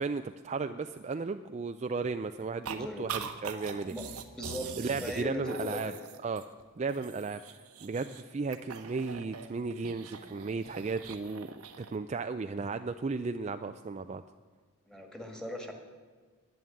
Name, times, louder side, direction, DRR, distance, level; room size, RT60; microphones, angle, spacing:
voice 1, 0.0-3.9 4.8-5.9 6.2-6.4 6.8-7.4 7.8-14.2, right 4 dB, 30° right, 8 dB, 0.3 m, -35 dB
sound 1, 2.6-2.8 3.1-6.6 6.9-8.2 8.5-12.0, right 6 dB, 85° right, 1.1 m, -43 dB
voice 2, 2.7-3.1 3.9-4.1 4.3-5.9 14.9-15.7, left 1 dB, 5° left, 3 dB, 1.8 m, -38 dB
11.0 x 10.5 x 8.6 m, 1.5 s
head